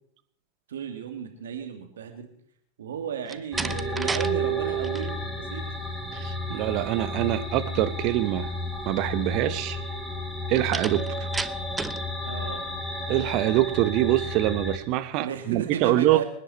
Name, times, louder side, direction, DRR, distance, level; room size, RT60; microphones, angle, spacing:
voice 1, 0.7-2.3 2.8-5.7 12.2-12.7 15.2-16.2, right 8 dB, 75° right, 5 dB, 2.5 m, -34 dB
Slam, 3.2-4.3 4.6-5.1 10.7-12.1, right 4 dB, 15° right, 0.7 m, -32 dB
sound 1, 3.5-14.8, equal, 5° left, 2.9 m, -32 dB
voice 2, 6.1-8.5 8.8-9.8 10.5-11.3 13.1-16.2, right 15 dB, 50° right, 11 dB, 1.3 m, -24 dB
25.5 x 10.0 x 4.3 m, 0.70 s
hypercardioid pair, 90°, 0 cm